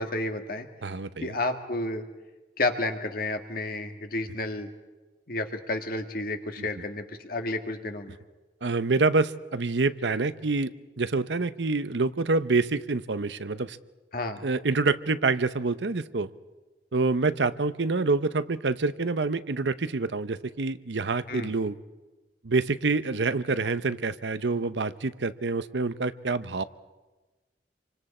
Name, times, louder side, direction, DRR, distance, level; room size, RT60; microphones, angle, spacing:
voice 1, 0.0-0.7 1.2-2.1 2.6-4.7 5.3-8.2 14.1-14.4 21.3-21.5, left 2 dB, 55° left, 6 dB, 1.8 m, -31 dB
voice 2, 0.8-1.4 6.6-6.7 8.6-10.7 11.0-13.8 14.4-16.3 16.9-21.8 22.4-26.6, right 3 dB, 85° right, 13 dB, 0.8 m, -27 dB
27.5 x 25.0 x 4.4 m, 1.2 s
head